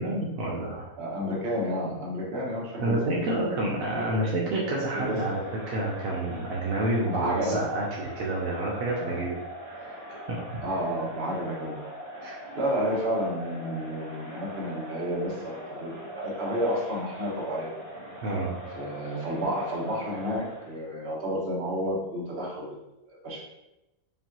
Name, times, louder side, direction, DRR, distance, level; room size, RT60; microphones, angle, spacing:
voice 1, 0.0-0.9 2.8-5.4 5.7-9.4 9.8-10.0 10.3-10.4 12.2-12.4 18.2-18.5, right 1 dB, 75° right, -4 dB, 1.1 m, -29 dB
voice 2, 1.0-3.3 3.9-4.2 4.6-5.2 7.1-7.6 9.0-9.2 10.6-11.7 12.5-15.4 15.7-17.7 18.8-22.8 23.1-23.4, equal, 45° right, -4 dB, 1.3 m, -31 dB
Crowd, 4.7-20.8, equal, 30° right, 0.9 m, -42 dB
5.3 x 2.5 x 2.9 m, 0.95 s
omnidirectional pair, 1.5 m